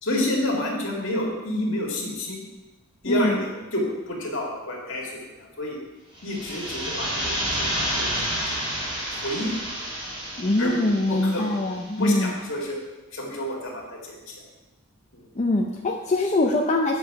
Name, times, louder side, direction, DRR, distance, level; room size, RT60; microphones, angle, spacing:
voice 1, 0.0-2.4 3.0-5.8 6.2-8.4 9.1-9.5 10.6-11.4 12.0-12.8 13.1-14.4 15.1-15.2, left 1 dB, 60° left, -1 dB, 2.2 m, -29 dB
voice 2, 3.1-3.4 10.4-12.3 15.4-17.0, left 2 dB, 30° left, -1 dB, 0.6 m, -23 dB
sound 1, 6.2-11.8, equal, 20° right, 2.0 m, -30 dB
9.0 x 6.5 x 4.8 m, 1.1 s
head